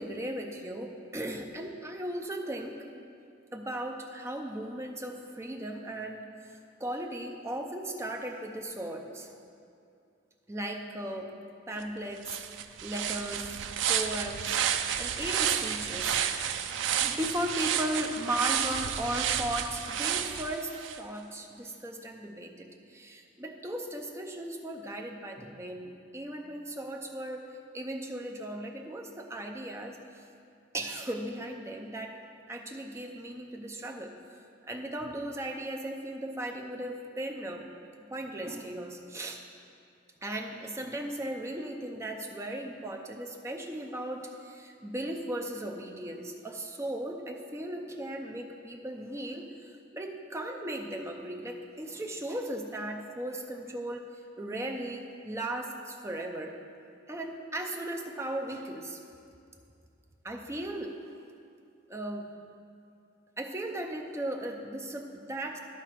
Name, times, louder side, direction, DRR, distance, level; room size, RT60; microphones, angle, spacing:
voice 1, 0.0-2.8 3.5-9.3 10.5-11.3 11.7-13.6 13.9-14.6 15.0-16.2 17.0-27.5 27.7-30.2 30.7-32.2 32.5-37.7 38.1-39.4 40.2-56.6 57.1-59.0 60.2-61.0 61.9-62.5 63.4-65.6, right 1 dB, 15° right, 3 dB, 0.6 m, -37 dB
sound 1, 11.8-11.9 12.2-21.0, right 9 dB, 70° right, 0.4 m, -31 dB
11.0 x 5.8 x 4.6 m, 2.5 s
head